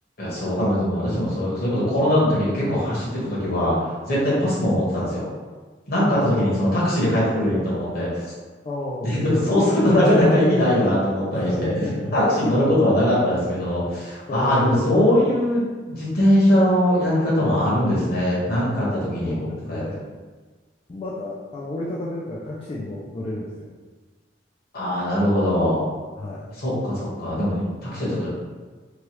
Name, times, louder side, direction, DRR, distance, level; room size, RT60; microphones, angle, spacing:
voice 1, 0.2-3.8 4.1-5.3 5.9-8.1 9.0-11.9 12.1-19.9 24.7-25.8 26.6-28.3, left 1 dB, 60° left, -6 dB, 1.1 m, -21 dB
voice 2, 6.1-6.7 7.5-7.7 8.6-9.6 11.3-12.8 14.3-14.8 19.2-20.1 20.9-23.7 26.2-26.5 27.9-28.2, left 1 dB, 30° left, -5 dB, 0.3 m, -31 dB
3.1 x 2.3 x 2.9 m, 1.4 s
head